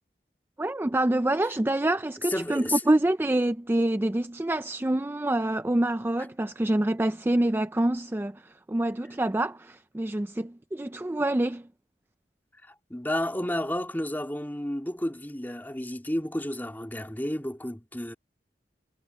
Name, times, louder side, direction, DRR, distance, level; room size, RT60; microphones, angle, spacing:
voice 1, 0.6-11.7, right 1 dB, 15° right, 0.4 m, -26 dB
voice 2, 2.3-2.8 12.6-18.1, left 1 dB, 10° left, 2.5 m, -31 dB
head